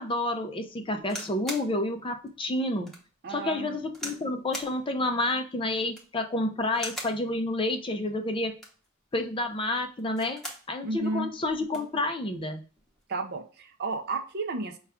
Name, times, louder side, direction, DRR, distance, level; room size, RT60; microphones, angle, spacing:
voice 1, 0.0-2.9 3.3-8.5 9.1-10.4 10.7-12.6, left 2 dB, 25° left, 5 dB, 0.5 m, -29 dB
sound 1, 1.0-1.7 2.3-2.4 2.9-3.0 3.9-4.2 4.5-4.8 5.8-6.2 6.7-7.2 8.4-8.9 10.0-10.7 11.1-11.2 11.4-11.9 12.8-13.0, equal, ahead, 0.9 m, -39 dB
voice 2, 3.2-3.8 10.8-11.3 13.1-14.8, right 3 dB, 50° right, 7 dB, 0.6 m, -32 dB
5.5 x 2.4 x 3.5 m, 0.37 s
head